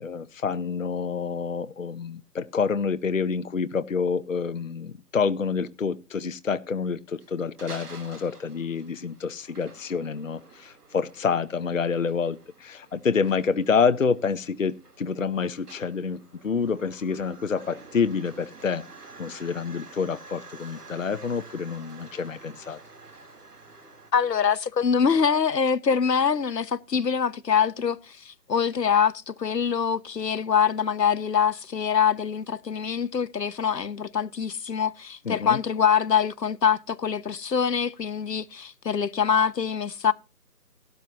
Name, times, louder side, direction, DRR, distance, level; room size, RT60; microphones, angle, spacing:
voice 1, 0.0-18.8 19.2-22.8 35.2-35.6, left 5 dB, 50° left, 0.8 m, -28 dB
sound 1, 7.1-24.1, right 3 dB, 65° right, 3.5 m, -49 dB
voice 2, 24.1-40.1, left 7 dB, 80° left, 1.0 m, -24 dB
16.5 x 12.5 x 2.8 m
figure-of-eight pair, 170°, 49 cm